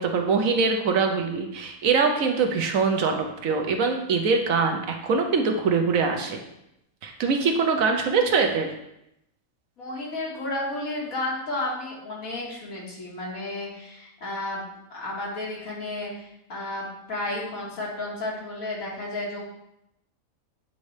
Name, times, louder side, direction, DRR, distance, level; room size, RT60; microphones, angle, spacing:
voice 1, 0.0-6.4 7.0-8.7, right 5 dB, 70° right, 4 dB, 1.2 m, -23 dB
voice 2, 9.8-14.6 14.9-19.4, left 2 dB, 75° left, -4 dB, 2.1 m, -32 dB
8.5 x 4.1 x 3.2 m, 0.83 s
omnidirectional pair, 1.5 m